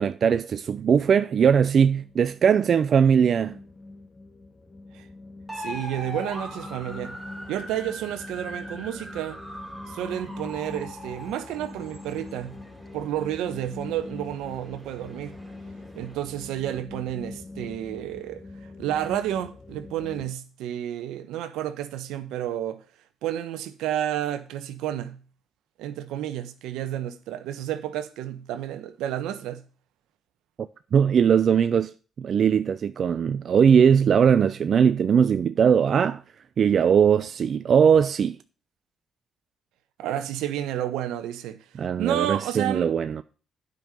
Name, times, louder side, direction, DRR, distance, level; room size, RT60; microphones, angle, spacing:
voice 1, 0.0-3.6 30.9-31.9 32.2-36.2 36.6-38.4 41.8-43.2, right 7 dB, 60° right, 0.4 m, -20 dB
sound 1, 1.6-20.3, left 2 dB, 30° left, 1.3 m, -43 dB
sound 2, 5.5-16.2, equal, 5° right, 3.4 m, -41 dB
voice 2, 5.6-7.2 7.5-9.4 9.9-12.6 12.9-15.3 15.9-18.4 18.8-22.8 23.2-25.2 25.8-29.6 40.0-41.6 42.0-42.9, right 11 dB, 90° right, 0.9 m, -31 dB
9.3 x 5.4 x 6.8 m
supercardioid pair, 65°, 0 cm